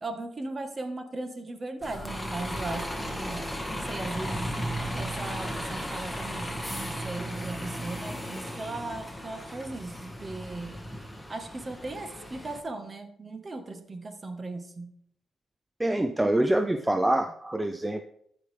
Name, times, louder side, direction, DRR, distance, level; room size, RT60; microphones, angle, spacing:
voice 1, 0.0-4.6 5.0-10.8 11.3-14.9, right 2 dB, 35° right, 7 dB, 1.5 m, -38 dB
Bus, 1.8-12.6, equal, 5° left, 1.7 m, -35 dB
voice 2, 15.8-18.0, right 1 dB, 15° right, 8 dB, 0.6 m, -25 dB
13.5 x 4.9 x 3.5 m, 0.68 s
supercardioid pair, 55°, 0 cm